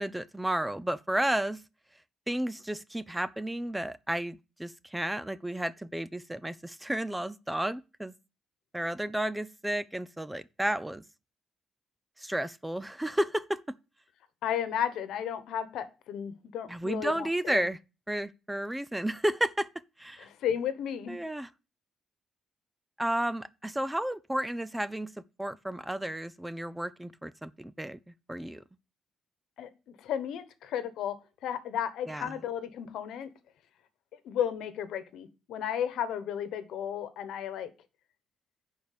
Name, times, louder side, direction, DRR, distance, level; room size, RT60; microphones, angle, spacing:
voice 1, 0.0-1.6 2.3-8.1 8.7-11.0 12.2-13.6 16.7-17.8 18.1-19.7 20.0-20.3 21.1-21.5 23.0-28.6 32.1-32.4, right 1 dB, 10° right, 0.5 m, -32 dB
voice 2, 14.4-17.7 20.2-21.2 29.6-31.1 31.4-33.3 34.2-37.7, left 9 dB, 80° left, 1.2 m, -33 dB
10.5 x 4.6 x 6.7 m
cardioid pair, 90°, 0 cm